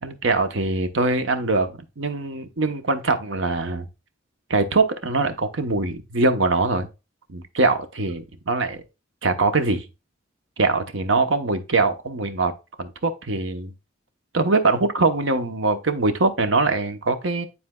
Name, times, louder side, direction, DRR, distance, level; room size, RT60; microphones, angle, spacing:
voice 1, 0.0-3.8 4.5-6.9 7.3-8.8 9.2-9.8 10.6-12.5 12.8-13.7 14.3-17.5, right 3 dB, 70° right, 1.0 m, -22 dB
9.8 x 4.2 x 2.3 m
head